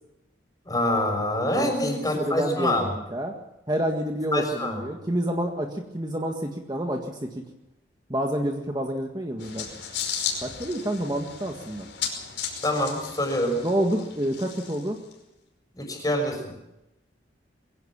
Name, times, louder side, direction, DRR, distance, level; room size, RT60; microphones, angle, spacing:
voice 1, 0.7-2.9 4.3-4.8 12.6-13.6 15.7-16.5, left 1 dB, 20° left, 4 dB, 5.9 m, -25 dB
voice 2, 1.5-3.3 3.7-7.4 8.1-9.7 10.4-11.9 13.6-15.0, right 1 dB, 20° right, 2 dB, 1.7 m, -28 dB
sound 1, 9.4-15.1, left 7 dB, 90° left, 5.4 m, -35 dB
22.5 x 16.5 x 7.4 m, 0.92 s
head